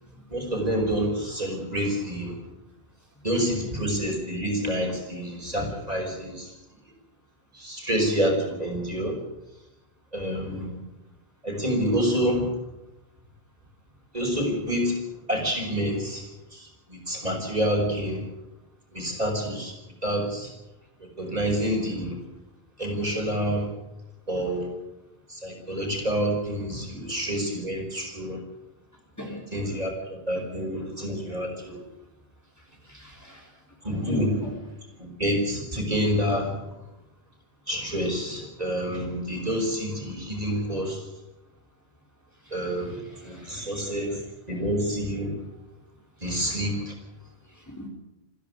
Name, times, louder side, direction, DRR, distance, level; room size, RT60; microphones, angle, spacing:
voice 1, 0.3-2.3 3.2-6.5 7.6-9.2 10.1-10.6 11.4-12.5 14.1-15.0 15.3-16.2 16.5-16.6 16.9-18.2 18.9-19.7 20.0-20.5 21.2-22.1 22.8-23.7 24.3-24.7 25.3-28.4 29.5-31.8 33.8-34.4 35.0-36.5 37.7-41.0 42.5-43.0 43.2-44.2 44.5-45.3 46.2-46.9, equal, 40° right, 1 dB, 5.6 m, -27 dB
voice 2, 29.2-29.8 30.3-30.4 32.9-33.5 33.8-34.5 42.9-44.2 46.3-46.6 47.7-47.9, equal, 15° left, 0 dB, 3.9 m, -39 dB
27.5 x 11.0 x 9.5 m, 0.92 s
omnidirectional pair, 1.0 m